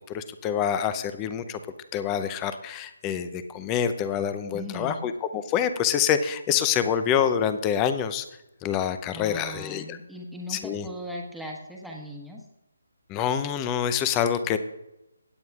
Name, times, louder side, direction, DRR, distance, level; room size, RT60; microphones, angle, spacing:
voice 1, 0.0-1.6 1.9-8.2 8.6-10.0 10.5-10.9 13.1-14.6, left 8 dB, 20° left, 11 dB, 0.6 m, -26 dB
voice 2, 4.5-5.0 9.1-12.4, equal, ahead, -2 dB, 1.3 m, -38 dB
17.0 x 9.2 x 2.4 m, 0.90 s
figure-of-eight pair, 150°, 0 cm